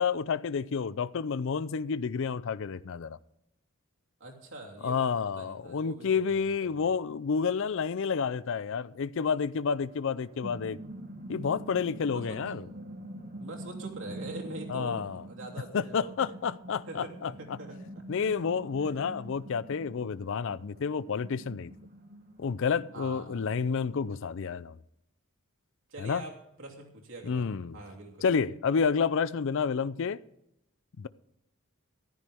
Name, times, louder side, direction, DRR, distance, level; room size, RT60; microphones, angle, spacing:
voice 1, 0.0-3.2 4.8-10.8 11.3-12.6 14.7-15.2 15.7-17.3 18.1-21.7 22.4-24.8 26.0-26.2 27.2-27.8 28.2-30.2 31.0-31.1, left 6 dB, 60° left, 0.4 m, -30 dB
voice 2, 4.2-5.1 5.4-6.9 12.1-12.4 13.4-16.4 16.9-17.8 18.2-18.4 18.8-19.1 22.9-23.5 25.9-28.3, right 2 dB, 60° right, 3.0 m, -44 dB
sound 1, 9.9-24.2, right 1 dB, 45° right, 1.5 m, -45 dB
14.5 x 13.0 x 3.5 m
head